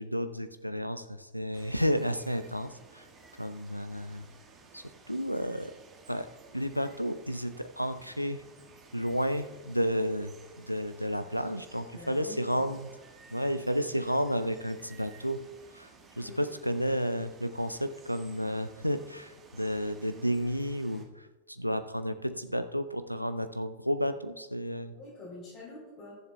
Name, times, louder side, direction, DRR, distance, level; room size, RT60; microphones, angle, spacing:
voice 1, 0.0-3.0 3.4-4.3 4.7-5.7 6.1-6.3 6.5-8.4 8.9-12.9 13.3-15.4 15.7-15.9 16.2-25.0, equal, 90° left, 11 dB, 0.5 m, -32 dB
Water, 1.5-21.0, right 4 dB, 30° right, 1.7 m, -55 dB
voice 2, 11.9-12.7 16.2-16.4 24.9-26.2, left 1 dB, 35° left, -5 dB, 3.7 m, -45 dB
21.5 x 7.4 x 2.3 m, 1.2 s
figure-of-eight pair, 90°, 0 cm